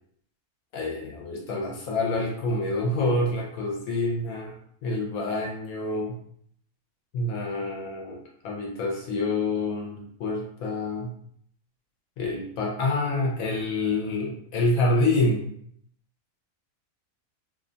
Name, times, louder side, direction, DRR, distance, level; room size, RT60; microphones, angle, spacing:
voice 1, 0.7-4.5 4.8-6.2 7.1-8.2 8.4-11.1 12.2-15.5, left 2 dB, 75° left, -1 dB, 1.0 m, -27 dB
2.6 x 2.1 x 2.4 m, 0.67 s
omnidirectional pair, 1.5 m